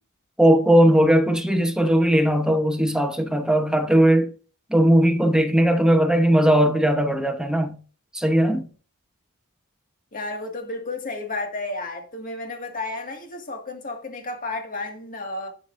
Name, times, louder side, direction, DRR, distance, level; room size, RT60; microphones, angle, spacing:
voice 1, 0.4-4.3 4.7-7.8 8.1-8.7, right 1 dB, 5° right, 1.0 m, -18 dB
voice 2, 10.1-15.5, left 2 dB, 40° left, 2.0 m, -32 dB
11.0 x 6.0 x 2.6 m
head